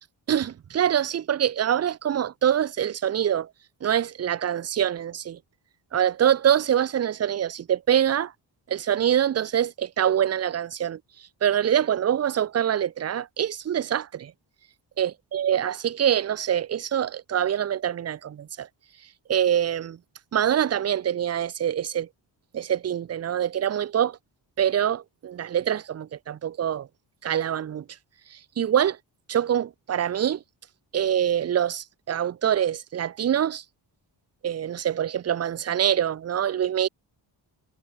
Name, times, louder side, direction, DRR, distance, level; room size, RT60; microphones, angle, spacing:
voice 1, 0.3-3.5 3.8-5.4 5.9-8.3 8.7-11.0 11.4-14.3 15.0-18.7 19.3-20.0 20.3-22.1 22.5-24.2 24.6-26.9 27.2-27.8 28.6-29.0 29.3-30.4 30.9-33.6 34.4-36.9, right 10 dB, 35° right, 0.5 m, -25 dB
cardioid pair, 100°, 45 cm